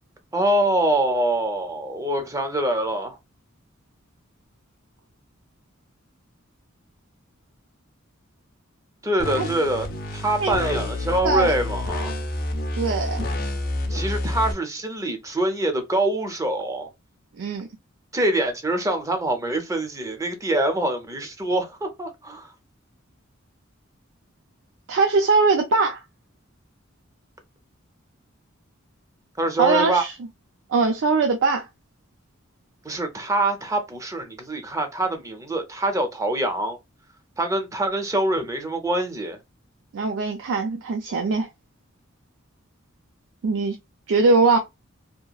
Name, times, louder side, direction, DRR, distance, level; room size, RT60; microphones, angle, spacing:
voice 1, 0.3-3.2 9.0-9.9 10.1-12.1 13.9-16.9 18.1-22.5 29.4-30.1 32.8-36.8 37.4-39.4, right 1 dB, 15° right, 0.5 m, -24 dB
sound 1, 9.2-14.5, left 1 dB, 45° left, 0.5 m, -28 dB
voice 2, 11.2-11.5 12.8-13.3 17.4-17.7 24.9-26.0 29.6-30.1 30.7-31.7 39.9-41.5 43.4-43.8 44.1-44.6, right 4 dB, 65° right, 0.4 m, -21 dB
2.8 x 2.3 x 2.2 m
head